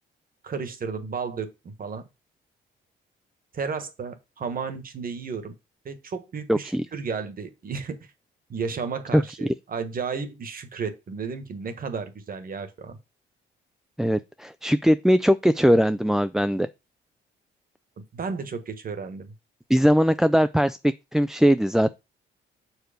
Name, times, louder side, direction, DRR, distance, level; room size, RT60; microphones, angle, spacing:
voice 1, 0.4-2.0 3.5-5.5 5.8-8.0 8.5-13.0 18.1-19.3, right 5 dB, 45° right, 1.6 m, -33 dB
voice 2, 6.5-6.8 9.1-9.2 14.0-16.7 19.7-21.9, equal, ahead, 0.4 m, -20 dB
6.4 x 4.8 x 5.1 m
cardioid pair, 90°, 20 cm